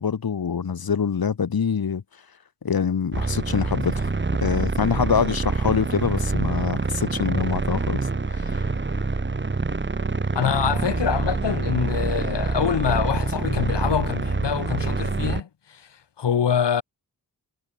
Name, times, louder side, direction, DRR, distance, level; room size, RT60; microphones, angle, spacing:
voice 1, 0.0-2.0 2.6-4.1 4.4-8.0 8.3-8.7, left 6 dB, 60° left, 5.4 m, -25 dB
sound 1, 3.1-15.4, right 3 dB, 25° right, 6.1 m, -26 dB
voice 2, 10.4-15.8 16.2-16.8, left 8 dB, 80° left, 5.4 m, -25 dB
wide cardioid pair, 170°, 41 cm